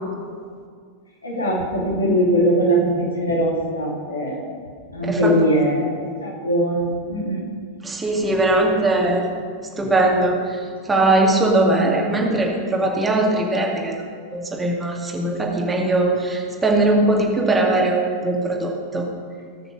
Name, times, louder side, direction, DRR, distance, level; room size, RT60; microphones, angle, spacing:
voice 1, 1.2-4.4 4.9-7.4, equal, 75° left, -3 dB, 3.1 m, -21 dB
voice 2, 5.0-5.4 7.8-9.3 9.8-14.0 14.3-19.0, right 2 dB, 15° right, -1 dB, 2.2 m, -20 dB
17.5 x 6.8 x 6.5 m, 2.1 s
figure-of-eight pair, 90°, 0 cm